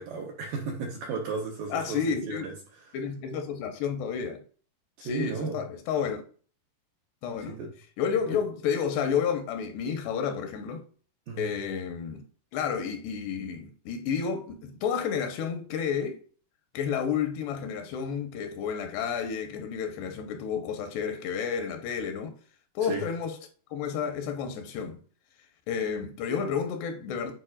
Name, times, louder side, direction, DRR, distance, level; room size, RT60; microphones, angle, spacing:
voice 1, 0.0-2.5 5.0-5.6 7.4-7.7 11.3-11.5 22.8-23.1, right 4 dB, 80° right, 2.0 m, -34 dB
voice 2, 1.7-2.5 2.9-4.4 5.0-6.2 7.2-7.6 8.0-10.8 11.4-12.2 12.5-16.2 16.7-22.3 22.8-23.3 23.7-25.0 25.7-27.3, left 7 dB, 80° left, 2.9 m, -31 dB
10.0 x 4.6 x 2.4 m
omnidirectional pair, 4.9 m